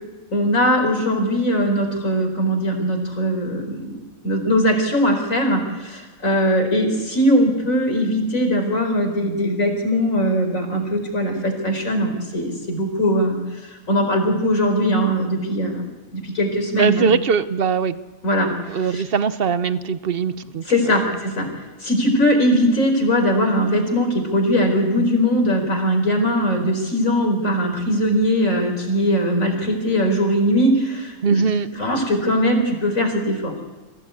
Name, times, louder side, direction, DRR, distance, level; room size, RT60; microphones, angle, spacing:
voice 1, 0.3-4.0 4.2-13.4 13.9-15.8 16.1-17.1 18.2-19.0 20.7-21.5 21.8-31.4 31.8-33.5, equal, 70° left, 3 dB, 4.9 m, -20 dB
voice 2, 16.8-18.0 18.4-20.6 31.2-31.7, right 6 dB, 45° right, 12 dB, 1.0 m, -21 dB
25.5 x 16.0 x 8.4 m, 1.3 s
omnidirectional pair, 1.4 m